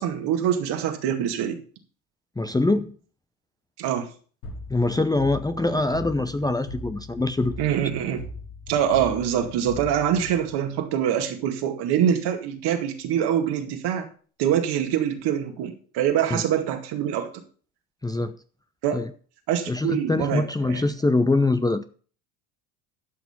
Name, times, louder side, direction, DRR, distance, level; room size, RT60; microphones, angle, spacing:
voice 1, 0.0-1.6 3.8-4.1 7.6-8.2 8.7-14.1 14.4-17.3 18.8-19.0 19.5-20.8, right 9 dB, 65° right, 2.2 m, -24 dB
voice 2, 2.4-2.9 4.7-7.5 16.3-16.4 18.0-18.4 18.9-19.1 19.7-21.8, left 2 dB, 10° left, 0.7 m, -23 dB
sound 1, 4.4-11.0, left 2 dB, 80° left, 5.7 m, -40 dB
12.5 x 6.2 x 5.7 m
hypercardioid pair, 75°, 43 cm